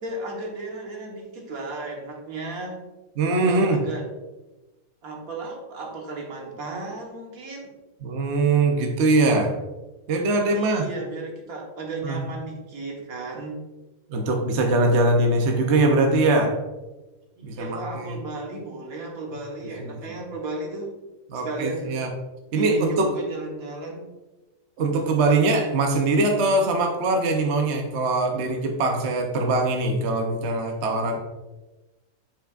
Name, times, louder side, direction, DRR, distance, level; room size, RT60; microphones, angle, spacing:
voice 1, 0.0-2.8 3.4-4.1 5.0-7.7 10.5-13.6 17.4-20.9 21.4-22.0 22.5-24.1, right 2 dB, 75° right, 0 dB, 1.7 m, -34 dB
voice 2, 3.2-3.8 8.0-9.6 10.1-10.9 12.0-12.2 14.1-16.6 17.4-18.2 21.3-22.1 22.5-23.1 24.8-31.2, right 2 dB, 55° right, 3 dB, 1.0 m, -22 dB
7.4 x 5.6 x 2.4 m, 1.1 s
omnidirectional pair, 1.5 m